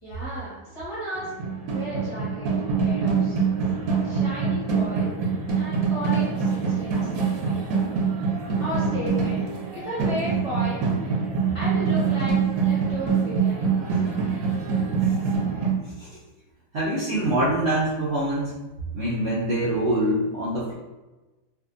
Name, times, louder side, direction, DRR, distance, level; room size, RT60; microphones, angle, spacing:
voice 1, 0.0-1.3 1.7-3.4 4.0-5.1 5.5-7.6 8.6-10.8 11.5-14.2, equal, 30° left, -10 dB, 0.6 m, -34 dB
sound 1, 1.2-15.7, right 5 dB, 70° right, 0.9 m, -24 dB
voice 2, 16.7-18.5 18.9-20.7, right 1 dB, 90° right, -10 dB, 0.5 m, -24 dB
2.6 x 2.5 x 2.4 m, 1.1 s
omnidirectional pair, 1.8 m